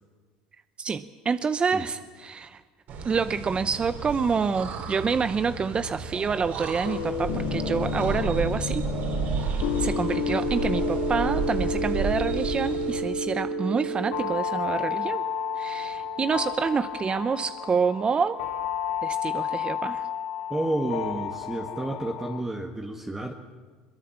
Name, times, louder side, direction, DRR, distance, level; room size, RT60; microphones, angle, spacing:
voice 1, 0.8-2.6 3.0-8.9 9.8-15.2 15.6-18.4 19.0-20.1, right 5 dB, 30° right, 12 dB, 0.8 m, -27 dB
sound 1, 2.9-13.0, right 5 dB, 60° right, 5.7 m, -33 dB
sound 2, 6.8-22.4, left 4 dB, 80° left, 2.0 m, -30 dB
voice 2, 20.5-23.3, right 2 dB, 15° right, 1 dB, 1.9 m, -30 dB
22.0 x 22.0 x 7.3 m, 1.5 s
hypercardioid pair, 85°, 4 cm